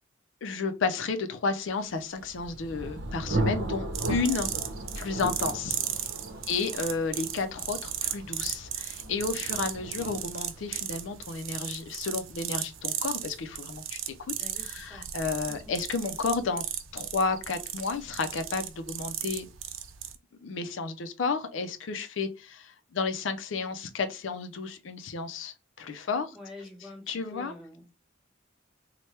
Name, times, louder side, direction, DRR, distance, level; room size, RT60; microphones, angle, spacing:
voice 1, 0.4-4.5 5.0-5.8 6.5-14.1 14.6-16.6 16.9-19.5 20.4-26.4 27.1-27.5, left 4 dB, 75° left, 0.5 m, -32 dB
Thunder, 2.0-13.5, right 1 dB, 55° right, 0.8 m, -36 dB
sound 1, 3.9-20.2, right 10 dB, 85° right, 0.5 m, -36 dB
voice 2, 14.4-15.1 15.5-15.7 26.3-28.0, left 1 dB, 5° right, 1.1 m, -47 dB
3.2 x 2.2 x 4.3 m
head